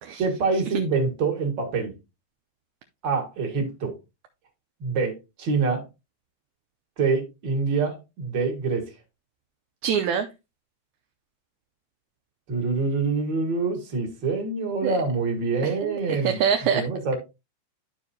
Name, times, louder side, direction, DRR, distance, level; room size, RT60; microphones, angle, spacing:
voice 1, 0.2-1.9 3.0-4.0 4.8-5.8 7.0-8.9 12.5-16.4 16.7-17.2, right 4 dB, 40° right, 2.3 m, -26 dB
voice 2, 9.8-10.3 14.8-14.9 15.6-16.8, right 7 dB, 75° right, 1.9 m, -25 dB
12.5 x 4.7 x 2.7 m
omnidirectional pair, 3.6 m